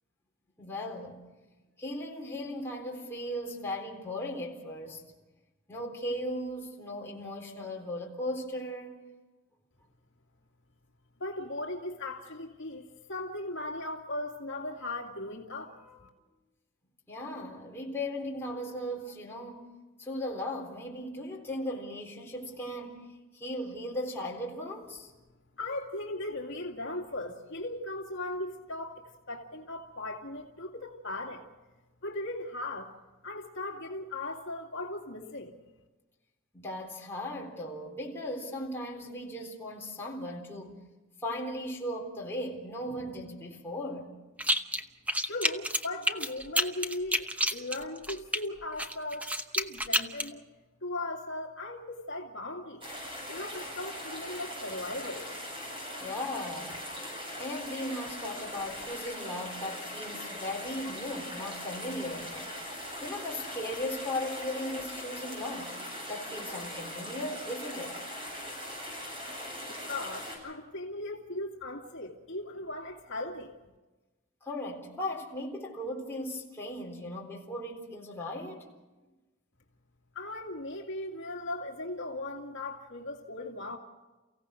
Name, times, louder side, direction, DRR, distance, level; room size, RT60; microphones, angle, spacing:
voice 1, 0.6-1.2 1.8-5.0 5.7-9.0 17.1-19.7 20.0-23.0 23.3-25.1 36.5-40.8 41.2-44.1 56.0-56.8 57.4-62.5 63.0-65.8 66.1-68.0 74.4-78.7, left 1 dB, 10° left, -2 dB, 3.8 m, -37 dB
voice 2, 11.2-16.1 25.6-31.5 32.0-32.9 33.2-35.6 45.2-49.3 49.5-50.4 50.8-52.8 53.3-55.3 69.7-73.5 80.1-83.8, left 2 dB, 60° left, 0 dB, 2.2 m, -38 dB
sound 1, 44.4-44.8 45.1-48.4 48.8-50.3, equal, 5° right, 0.9 m, -29 dB
sound 2, 52.8-70.4, equal, 25° right, 7.7 m, -40 dB
30.0 x 16.5 x 6.4 m, 1.2 s
head